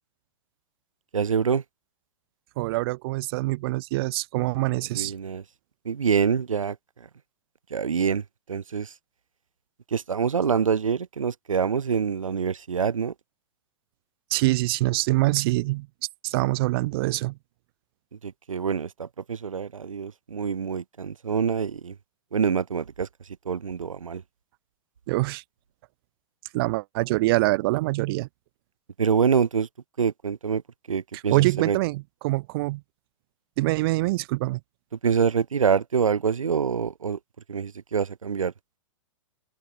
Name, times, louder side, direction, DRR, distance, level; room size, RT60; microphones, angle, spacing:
voice 1, 1.1-1.6 4.9-5.4 5.9-6.8 7.7-8.2 8.5-8.9 9.9-13.1 18.2-22.0 22.3-23.1 23.5-24.2 29.0-29.7 30.0-30.6 30.9-31.8 35.0-37.2 37.5-38.5, right 6 dB, 90° right, 2.1 m, -25 dB
voice 2, 2.6-5.1 14.3-15.9 16.2-17.4 25.1-25.4 26.5-28.3 31.3-32.8 33.6-34.6, right 20 dB, 45° right, 0.9 m, -24 dB
open air
hypercardioid pair, 125°, 17 cm